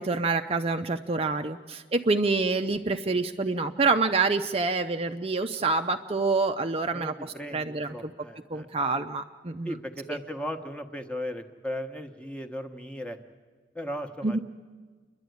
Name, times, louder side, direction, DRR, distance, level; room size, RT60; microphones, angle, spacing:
voice 1, 0.0-8.1 8.5-9.7 10.1-10.2 14.2-14.4, right 3 dB, 35° right, 6 dB, 0.5 m, -27 dB
voice 2, 6.9-8.9 9.6-13.2 13.7-14.4, equal, 5° left, 6 dB, 1.1 m, -37 dB
29.0 x 11.5 x 9.3 m, 1.5 s
head